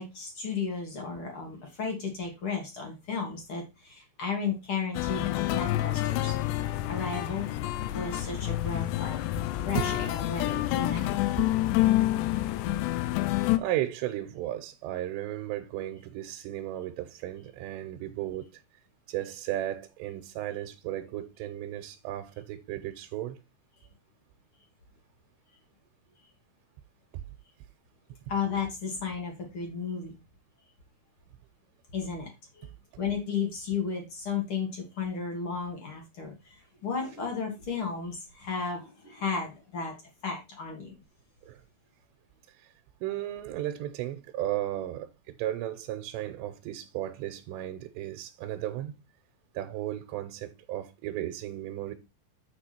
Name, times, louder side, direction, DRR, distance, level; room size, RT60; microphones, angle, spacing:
voice 1, 0.0-6.4 6.9-7.5 7.9-9.2 9.7-11.2 28.3-30.2 31.9-32.3 32.5-32.7 33.0-40.0 40.2-40.9, left 5 dB, 45° left, 1.9 m, -34 dB
sound 1, 4.9-13.6, left 15 dB, 85° left, 2.8 m, -28 dB
voice 2, 13.6-18.6 19.1-23.4 27.1-27.2 41.5-41.6 42.6-42.7 43.0-49.0 49.5-51.9, right 13 dB, 90° right, 2.9 m, -35 dB
8.5 x 4.9 x 4.3 m
omnidirectional pair, 4.9 m